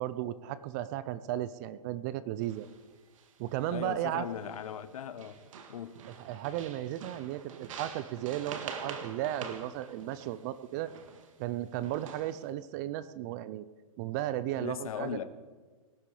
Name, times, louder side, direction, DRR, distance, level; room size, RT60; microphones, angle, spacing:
voice 1, 0.0-2.7 3.4-4.3 6.1-10.9 11.4-13.6 14.0-15.2, right 13 dB, 30° right, 15 dB, 0.5 m, -35 dB
sound 1, 2.4-2.8 3.2-3.8 4.4-4.9 5.2-11.3 11.8-12.4, right 6 dB, 60° right, 2.0 m, -45 dB
voice 2, 3.7-5.4 5.7-6.0 14.6-15.2, left 9 dB, 70° left, 12 dB, 1.0 m, -38 dB
18.5 x 12.0 x 4.9 m, 1.4 s
hypercardioid pair, 150°, 19 cm